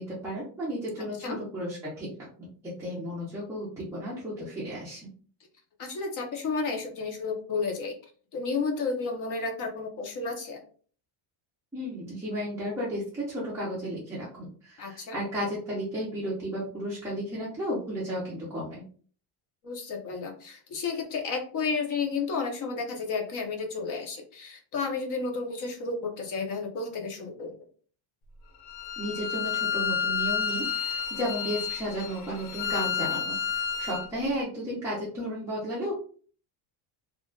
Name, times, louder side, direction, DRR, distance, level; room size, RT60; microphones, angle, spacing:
voice 1, 0.0-2.1 2.8-5.1 11.7-18.8 29.0-35.9, equal, 5° right, -9 dB, 0.4 m, -33 dB
voice 2, 5.8-7.9 8.3-10.6 14.8-15.2 19.6-27.5, left 4 dB, 40° left, 2 dB, 0.7 m, -32 dB
Bowed string instrument, 28.7-34.1, left 7 dB, 80° left, 0.7 m, -30 dB
2.4 x 2.1 x 3.6 m, 0.43 s
cardioid pair, 180°, 49 cm